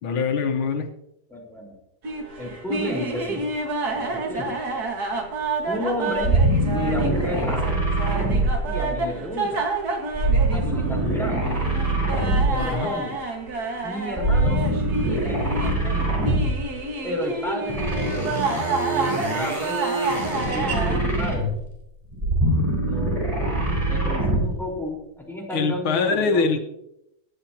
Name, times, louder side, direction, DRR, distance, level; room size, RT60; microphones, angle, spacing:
voice 1, 0.0-0.9 12.6-12.9 25.5-26.6, left 4 dB, 85° left, 6 dB, 2.0 m, -23 dB
voice 2, 1.3-1.8 2.4-3.5 3.9-4.5 5.7-6.3 6.7-7.8 8.6-9.6 10.5-11.5 12.5-13.2 13.8-14.7 15.1-16.2 17.0-18.3 18.9-19.8 20.3-21.5 22.8-23.3 23.9-26.5, left 1 dB, ahead, -3 dB, 4.1 m, -31 dB
sound 1, 2.0-21.0, right 3 dB, 50° right, 2.1 m, -29 dB
sound 2, 6.2-9.2 10.1-12.8 14.1-16.7 17.7-21.7 22.1-24.6, right 2 dB, 15° right, 3.9 m, -23 dB
22.5 x 10.0 x 2.9 m, 0.81 s
omnidirectional pair, 2.2 m